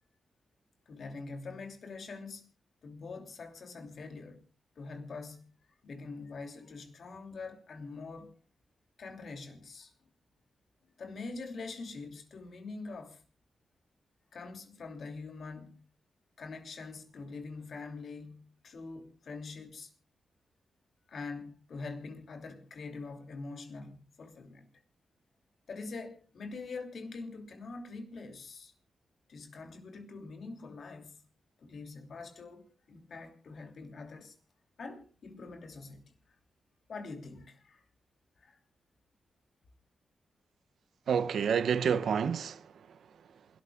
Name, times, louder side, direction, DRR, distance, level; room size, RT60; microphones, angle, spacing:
voice 1, 0.9-2.5 2.8-4.4 4.8-5.5 5.8-8.3 9.0-9.9 11.0-13.2 14.3-15.8 16.4-19.9 21.1-24.7 25.7-28.7 29.3-31.2 31.6-34.3 34.8-36.1 36.9-37.8 38.4-38.6, left 3 dB, 70° left, 2.9 m, -44 dB
voice 2, 41.1-43.5, right 7 dB, 75° right, 0.6 m, -30 dB
27.5 x 13.0 x 2.4 m
supercardioid pair, 50°, 0 cm